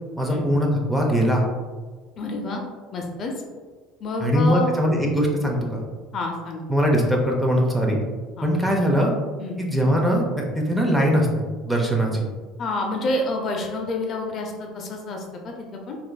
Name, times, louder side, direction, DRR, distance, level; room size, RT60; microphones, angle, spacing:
voice 1, 0.2-1.4 4.2-5.8 6.7-8.0 8.4-9.1 9.6-12.3, equal, 5° right, 0 dB, 0.5 m, -21 dB
voice 2, 2.2-2.6 2.9-3.3 4.0-4.7 6.1-6.6 8.4-8.5 9.4-9.6 12.6-16.0, left 2 dB, 40° left, 2 dB, 0.5 m, -28 dB
4.2 x 2.5 x 2.2 m, 1.4 s
supercardioid pair, 120°, 0 cm